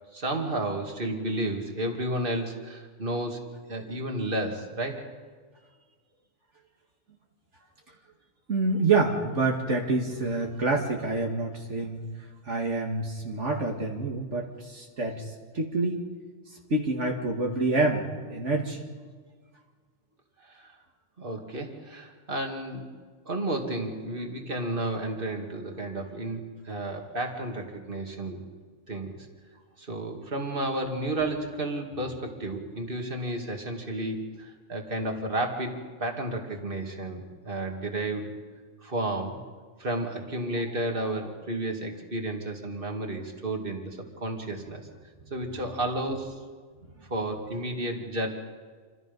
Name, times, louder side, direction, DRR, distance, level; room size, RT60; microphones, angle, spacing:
voice 1, 0.1-5.1 20.5-20.7 21.2-22.9 23.3-28.4 28.9-29.2 29.8-38.3 38.8-39.4 39.8-44.9 45.3-46.4 47.1-48.3, right 1 dB, 45° right, 2 dB, 2.7 m, -32 dB
voice 2, 8.5-12.0 12.4-16.1 16.7-18.8, right 3 dB, 75° right, 0 dB, 2.4 m, -27 dB
28.0 x 26.0 x 5.5 m, 1.5 s
omnidirectional pair, 1.3 m